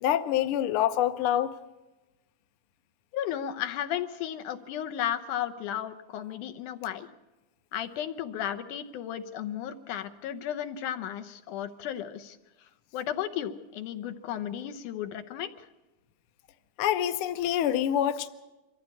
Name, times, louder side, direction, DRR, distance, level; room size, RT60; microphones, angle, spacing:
voice 1, 0.0-1.5 16.8-18.3, left 11 dB, 70° left, 10 dB, 1.3 m, -26 dB
voice 2, 3.1-7.1 7.7-12.4 12.9-15.7, left 10 dB, 85° left, 9 dB, 2.5 m, -34 dB
23.5 x 14.5 x 8.3 m, 1.1 s
omnidirectional pair, 3.5 m